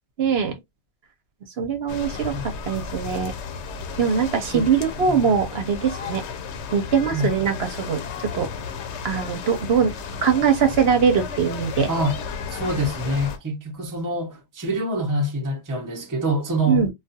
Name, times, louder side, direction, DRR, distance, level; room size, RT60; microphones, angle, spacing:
voice 1, 0.2-0.5 1.6-3.3 4.0-6.2 6.7-8.0 8.3-8.5 9.0-9.9 10.2-11.9 16.7-16.9, right 6 dB, 70° right, 0.9 m, -22 dB
sound 1, 1.9-13.4, left 5 dB, 85° left, 0.9 m, -34 dB
voice 2, 12.5-16.8, right 1 dB, 20° right, 0.6 m, -25 dB
2.3 x 2.3 x 2.7 m
omnidirectional pair, 1.1 m